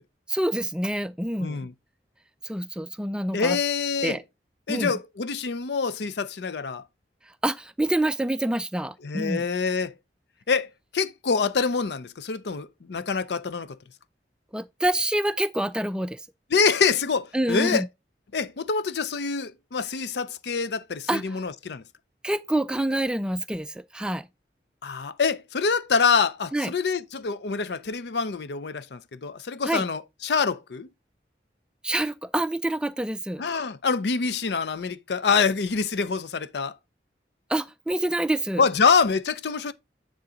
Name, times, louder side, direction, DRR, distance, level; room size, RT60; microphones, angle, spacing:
voice 1, 0.3-1.6 2.4-3.6 4.0-4.2 4.7-4.9 7.4-9.5 14.5-16.2 17.3-17.9 21.1-21.4 22.2-24.3 26.5-26.7 29.6-29.8 31.8-33.4 37.5-38.6, right 1 dB, 5° right, 0.3 m, -27 dB
voice 2, 1.4-1.7 3.3-4.2 4.7-6.8 9.0-9.9 10.5-10.7 10.9-13.8 16.5-17.9 18.3-21.8 24.8-30.9 33.4-36.7 38.6-39.7, left 5 dB, 70° left, 0.5 m, -25 dB
9.7 x 3.8 x 3.8 m
head